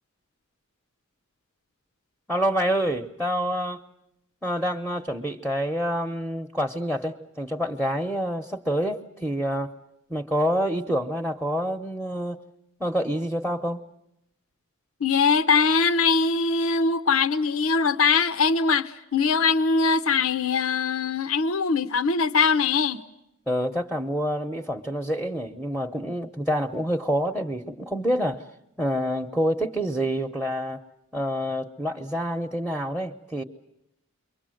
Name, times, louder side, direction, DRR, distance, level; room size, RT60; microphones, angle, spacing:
voice 1, 2.3-3.8 4.4-9.7 10.1-12.4 12.8-13.8 23.5-28.4 28.8-30.8 31.1-33.4, equal, ahead, 0.9 m, -27 dB
voice 2, 15.0-23.0, left 5 dB, 80° left, 0.9 m, -22 dB
28.5 x 23.5 x 7.7 m
head